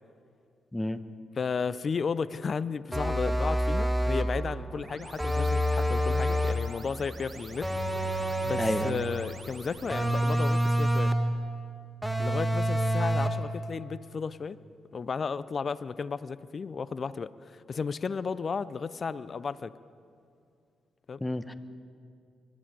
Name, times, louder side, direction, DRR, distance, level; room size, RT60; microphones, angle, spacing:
voice 1, 1.4-7.7 8.2-11.1 12.2-14.6 14.9-19.7 21.1-21.2, left 5 dB, 50° left, 17 dB, 0.5 m, -34 dB
sound 1, 2.9-4.4 5.2-6.7 7.6-9.1 9.9-11.3 12.0-13.5, equal, 5° right, 1.7 m, -27 dB
sound 2, 4.2-11.0, right 3 dB, 40° right, 1.6 m, -46 dB
voice 2, 8.5-9.0 21.2-21.5, left 1 dB, 15° left, 12 dB, 1.0 m, -30 dB
23.0 x 12.5 x 5.1 m, 2.4 s
hypercardioid pair, 45°, 0 cm